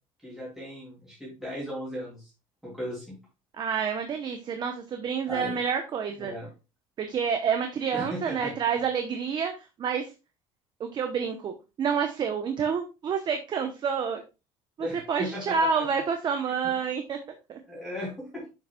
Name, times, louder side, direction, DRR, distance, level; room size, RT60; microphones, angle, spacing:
voice 1, 0.2-2.3 2.6-3.2 5.3-5.6 6.3-6.5 7.9-8.5 14.8-16.0 17.7-18.4, equal, 5° right, -7 dB, 2.9 m, -37 dB
voice 2, 3.6-6.3 7.0-10.1 10.8-14.2 14.8-17.2 17.5-17.6, right 6 dB, 40° right, 6 dB, 0.8 m, -28 dB
7.1 x 6.9 x 2.3 m, 0.28 s
cardioid pair, 140°, 12 cm